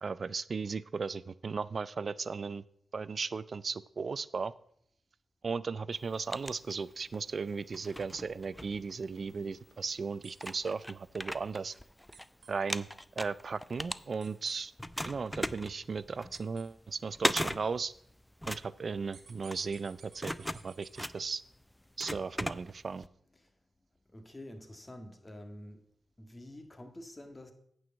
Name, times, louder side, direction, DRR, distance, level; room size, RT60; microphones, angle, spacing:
voice 1, 0.0-2.6 2.9-4.5 5.4-11.7 12.5-12.9 13.2-14.7 15.1-17.9 18.5-21.4 22.0-23.1, right 5 dB, 60° right, 0.4 m, -36 dB
sound 1, 5.9-7.2 7.7-9.4 10.0-10.1 10.4-12.3 12.5-14.5 14.8-23.1, left 1 dB, 10° left, 0.5 m, -38 dB
sound 2, 10.2-10.5 12.1-12.5 14.2-14.6 16.3-16.6 19.1-21.1, right 6 dB, 75° right, 1.4 m, -55 dB
voice 2, 24.1-25.8 26.2-27.5, left 1 dB, 25° left, 1.8 m, -48 dB
8.9 x 4.7 x 7.2 m
supercardioid pair, 40°, 0 cm